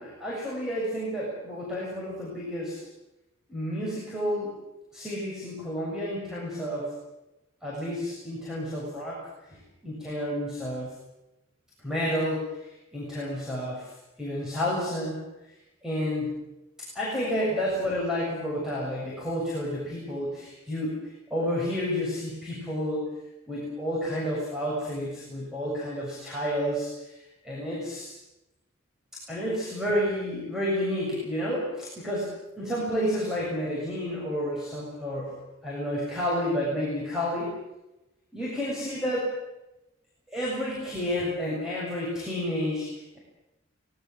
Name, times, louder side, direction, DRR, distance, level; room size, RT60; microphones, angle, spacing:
voice 1, 0.0-2.8 3.5-4.6 4.9-6.9 7.6-10.9 11.8-13.9 14.2-15.2 15.8-16.4 16.8-21.0 21.3-23.1 23.5-27.1 27.4-28.1 29.1-35.4 35.6-37.5 38.3-39.4 40.3-43.2, equal, 5° right, -6 dB, 7.3 m, -30 dB
24.5 x 20.5 x 7.6 m, 0.95 s
head